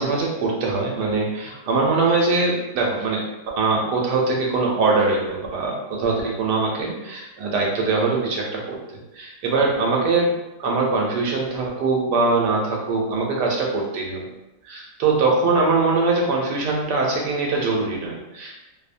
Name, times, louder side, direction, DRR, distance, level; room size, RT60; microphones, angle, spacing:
voice 1, 0.0-3.3 3.6-8.8 9.1-14.3 14.6-18.5, right 3 dB, 90° right, -1 dB, 1.2 m, -22 dB
2.9 x 2.1 x 2.5 m, 0.98 s
omnidirectional pair, 1.8 m